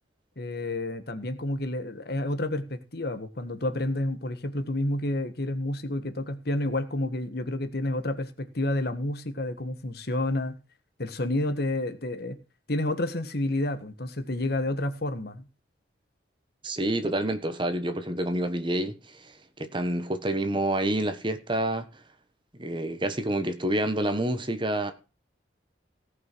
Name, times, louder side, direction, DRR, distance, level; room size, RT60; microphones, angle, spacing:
voice 1, 0.4-10.6 11.0-12.4 12.7-15.5, left 1 dB, 55° left, 1.5 m, -30 dB
voice 2, 16.6-19.3 19.6-21.9 22.6-24.9, right 1 dB, 25° right, 1.3 m, -28 dB
17.5 x 5.9 x 6.2 m
head